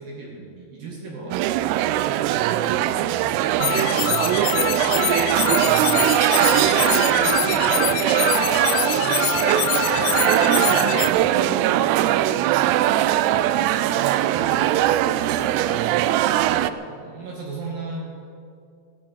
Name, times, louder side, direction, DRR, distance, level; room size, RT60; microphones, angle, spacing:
voice 1, 0.0-1.8 2.4-3.8 14.2-15.7 16.4-18.0, right 3 dB, 60° right, -3 dB, 3.7 m, -37 dB
sound 1, 1.3-16.7, right 13 dB, 85° right, 2.6 m, -20 dB
sound 2, 3.6-11.1, left 11 dB, 85° left, 2.7 m, -25 dB
voice 2, 4.8-5.9 6.5-7.6 7.8-9.4 10.1-12.4 12.8-13.9, equal, 15° right, -5 dB, 3.5 m, -38 dB
16.0 x 11.5 x 7.3 m, 2.3 s
omnidirectional pair, 5.0 m